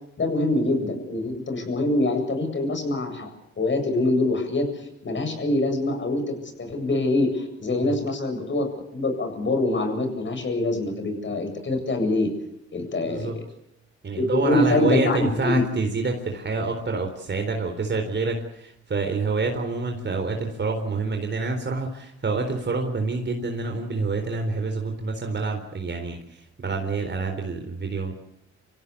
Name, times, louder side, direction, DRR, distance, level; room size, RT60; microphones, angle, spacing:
voice 1, 0.2-3.3 3.6-12.3 12.7-13.4 14.1-15.6, left 2 dB, 40° left, 5 dB, 7.8 m, -24 dB
voice 2, 13.1-13.4 14.0-28.1, right 3 dB, 35° right, 4 dB, 4.0 m, -27 dB
26.5 x 16.5 x 8.5 m, 0.80 s
cardioid pair, 90°, 30 cm